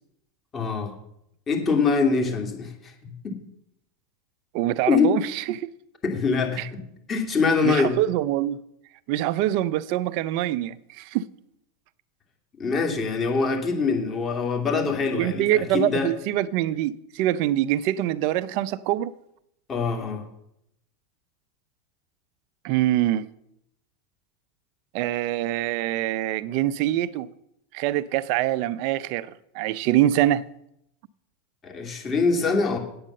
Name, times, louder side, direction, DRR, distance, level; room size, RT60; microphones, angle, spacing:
voice 1, 0.5-0.9 1.5-3.3 4.9-5.1 6.0-6.8 7.1-8.0 12.6-16.1 19.7-20.2 31.6-32.8, left 4 dB, 30° left, 2.7 m, -24 dB
voice 2, 4.5-5.7 6.6-6.7 7.6-8.6 9.1-11.3 15.2-19.1 22.6-23.3 24.9-27.3 27.7-30.4, right 13 dB, 55° right, 0.6 m, -24 dB
8.7 x 8.5 x 6.6 m
hypercardioid pair, 110°, 0 cm